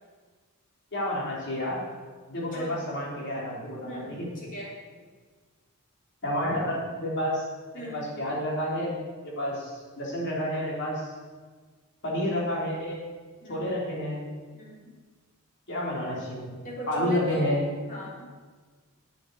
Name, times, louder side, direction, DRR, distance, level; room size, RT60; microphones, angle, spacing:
voice 1, 0.9-1.8 2.3-4.3 6.2-7.5 7.7-9.0 9.2-11.1 12.0-13.0 13.5-14.3 15.7-17.6, left 1 dB, 55° left, -3 dB, 3.6 m, -30 dB
voice 2, 3.8-4.7 7.7-8.1 13.4-13.7 14.5-14.9 16.6-18.3, equal, 40° left, -5 dB, 3.9 m, -39 dB
9.0 x 8.0 x 7.9 m, 1.5 s
head